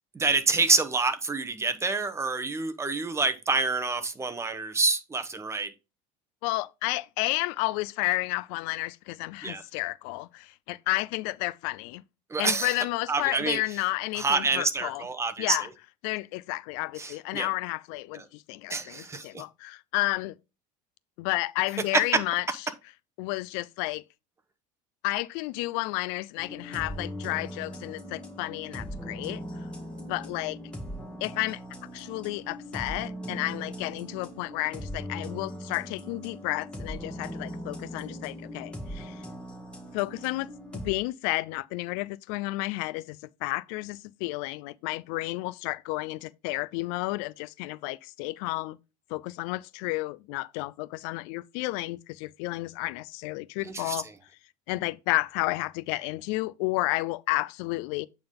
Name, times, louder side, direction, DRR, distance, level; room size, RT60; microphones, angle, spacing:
voice 1, 0.1-5.7 9.4-9.6 12.3-12.8 13.1-13.6 14.1-15.7 17.0-17.5 18.1-18.2 18.7-19.4 21.9-22.2 53.6-54.0, right 3 dB, 15° right, 0.9 m, -27 dB
voice 2, 6.4-12.0 12.4-15.0 15.4-15.7 16.0-20.3 21.2-22.4 23.2-24.0 25.0-29.4 30.1-30.6 31.2-31.6 31.9-39.2 39.9-40.5 40.8-48.8 49.1-54.1 54.7-58.1, left 20 dB, 70° left, 0.4 m, -31 dB
sound 1, 26.4-40.9, equal, 5° left, 1.8 m, -40 dB
8.7 x 3.7 x 3.7 m
supercardioid pair, 115°, 17 cm